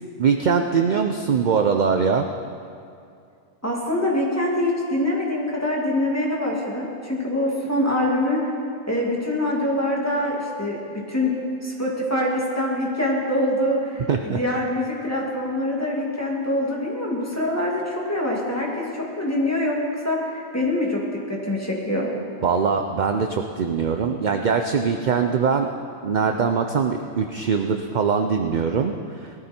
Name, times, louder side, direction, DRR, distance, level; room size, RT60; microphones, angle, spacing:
voice 1, 0.2-2.3 14.1-14.4 22.4-25.7 26.0-29.3, right 6 dB, 50° right, 5 dB, 0.6 m, -22 dB
voice 2, 3.6-8.4 8.9-10.8 11.1-11.3 11.6-19.8 20.0-21.0 21.3-22.1, left 1 dB, 10° left, -3 dB, 2.3 m, -24 dB
19.5 x 13.5 x 4.4 m, 2.4 s
omnidirectional pair, 1.4 m